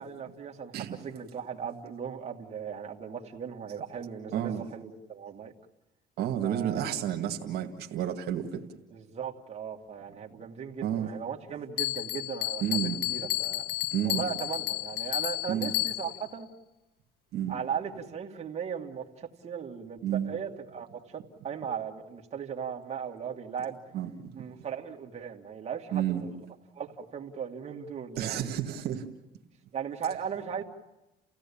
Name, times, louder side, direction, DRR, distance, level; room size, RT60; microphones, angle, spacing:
voice 1, 0.0-5.5 6.4-6.8 8.9-13.6 14.0-16.5 17.5-23.8 24.3-26.4 26.7-28.4 29.7-30.6, right 7 dB, 40° right, 1 dB, 2.4 m, -37 dB
voice 2, 4.3-4.7 6.2-8.6 10.8-11.1 12.6-13.0 13.9-14.2 15.5-15.7 17.3-17.5 20.0-20.3 23.9-24.3 25.9-26.2 28.2-29.0, right 10 dB, 75° right, 3 dB, 2.0 m, -30 dB
Bell, 11.8-16.3, left 18 dB, 75° left, 1.1 m, -32 dB
30.0 x 16.5 x 8.6 m, 1.0 s
cardioid pair, 110°, 17 cm